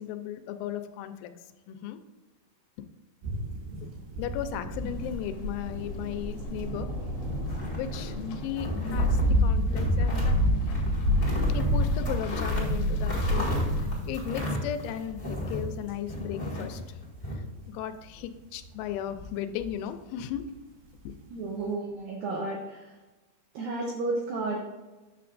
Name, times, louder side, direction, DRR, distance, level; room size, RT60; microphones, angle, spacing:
voice 1, 0.0-1.3 1.7-2.0 3.8-3.9 4.2-6.9 7.7-10.4 11.5-13.5 13.8-17.0 17.3-20.4 21.0-21.1, left 10 dB, 90° left, 9 dB, 3.1 m, -36 dB
sound 1, 3.2-16.9 17.2-18.2 18.6-19.3 19.6-19.8 20.4-20.5, equal, 70° right, 3.4 m, -29 dB
sound 2, 4.8-13.8, left 5 dB, 75° left, 2.4 m, -43 dB
sound 3, 7.4-8.2 8.6-9.3 9.7-10.4 10.7-15.7 16.1-17.3, left 1 dB, 45° left, 0.6 m, -33 dB
voice 2, 21.3-22.9 23.5-24.6, right 3 dB, 85° right, -1 dB, 2.0 m, -32 dB
9.9 x 6.8 x 2.6 m, 1.2 s
omnidirectional pair, 5.3 m